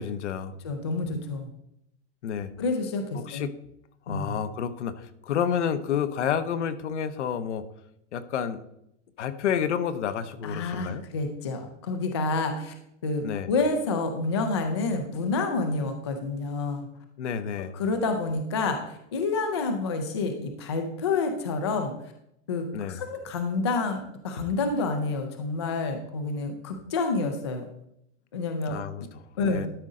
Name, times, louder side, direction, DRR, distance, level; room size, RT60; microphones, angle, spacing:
voice 1, 0.0-0.5 2.2-2.5 3.1-3.5 4.1-7.6 8.1-8.6 9.2-11.0 13.2-13.5 17.2-17.7 22.7-23.0 28.7-29.7, left 8 dB, 65° left, 12 dB, 0.9 m, -30 dB
voice 2, 0.6-1.5 2.6-3.5 4.1-4.4 10.4-12.7 13.0-16.9 17.7-21.9 22.5-27.6 28.3-29.1 29.4-29.7, left 3 dB, 25° left, 6 dB, 0.4 m, -28 dB
12.0 x 5.1 x 3.7 m, 0.78 s
supercardioid pair, 175°, 37 cm